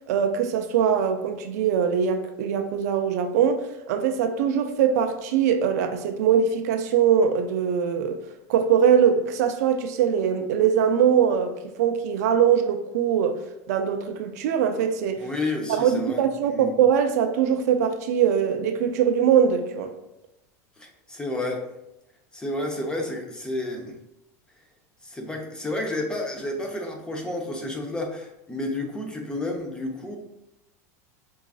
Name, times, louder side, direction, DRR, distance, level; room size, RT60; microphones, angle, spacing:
voice 1, 0.1-8.2 8.5-13.4 13.7-15.3 15.8-19.9, right 8 dB, 80° right, 0.4 m, -22 dB
voice 2, 15.2-16.7 20.8-21.6 22.3-23.9 25.0-30.2, left 2 dB, 10° left, 0.6 m, -31 dB
4.7 x 2.3 x 2.4 m
supercardioid pair, 125°, 9 cm